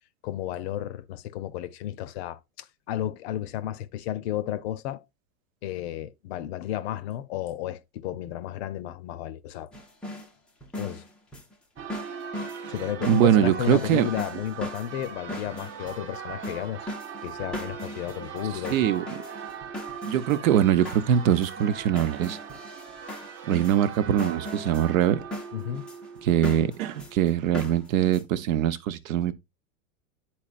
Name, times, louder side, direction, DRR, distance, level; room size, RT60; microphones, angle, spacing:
voice 1, 0.2-5.0 5.6-9.7 10.8-11.0 12.7-16.9 17.2-18.9 25.5-25.8, left 12 dB, 50° left, 0.6 m, -33 dB
sound 1, 9.7-10.3 10.6-28.2, left 1 dB, ahead, 0.4 m, -39 dB
Church bell, 11.8-27.5, right 7 dB, 30° right, 0.7 m, -40 dB
voice 2, 13.1-14.1 18.7-19.2 20.0-22.4 23.5-25.2 26.2-29.3, right 10 dB, 70° right, 0.8 m, -23 dB
10.5 x 4.3 x 2.4 m
supercardioid pair, 145°, 43 cm